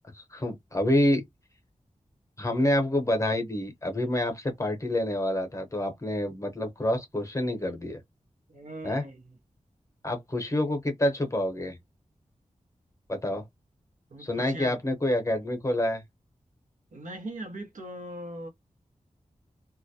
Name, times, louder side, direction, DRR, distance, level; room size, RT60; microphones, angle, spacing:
voice 1, 0.1-1.2 2.4-8.0 8.8-9.0 10.0-11.8 13.1-13.4 14.2-16.0, left 1 dB, 25° left, 0.8 m, -27 dB
voice 2, 8.5-9.2 14.1-14.8 16.9-18.5, right 1 dB, 85° right, 0.8 m, -40 dB
2.3 x 2.1 x 2.7 m
wide cardioid pair, 65°, 13 cm